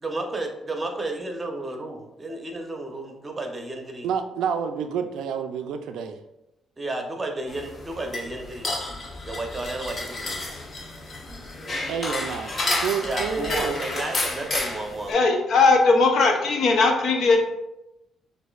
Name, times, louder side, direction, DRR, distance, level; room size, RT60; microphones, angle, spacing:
voice 1, 0.0-4.1 6.8-8.8 9.2-10.4 13.0-15.2, right 2 dB, 25° right, 3 dB, 0.8 m, -32 dB
voice 2, 4.0-6.2 11.9-13.8, right 7 dB, 85° right, 7 dB, 0.3 m, -29 dB
sound 1, 7.5-15.1, left 2 dB, 40° left, 0.8 m, -31 dB
voice 3, 15.1-17.4, left 3 dB, 65° left, 3 dB, 0.7 m, -19 dB
6.2 x 2.6 x 2.3 m, 0.90 s
cardioid pair, 90°, 0 cm